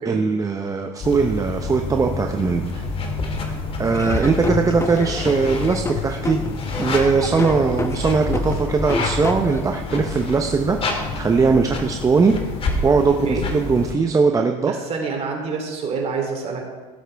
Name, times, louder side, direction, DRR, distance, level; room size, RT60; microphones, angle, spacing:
voice 1, 0.1-2.8 3.8-6.4 6.8-12.4 12.8-14.7, right 4 dB, 20° right, 4 dB, 0.7 m, -20 dB
sound 1, 1.0-13.9, left 3 dB, 30° left, 2.0 m, -28 dB
Laughter / Drum, 3.9-9.8, left 3 dB, 15° left, 0.9 m, -29 dB
voice 2, 14.7-16.6, right 5 dB, 35° right, 1 dB, 3.2 m, -27 dB
17.0 x 7.9 x 3.4 m, 1.3 s
supercardioid pair, 110°, 19 cm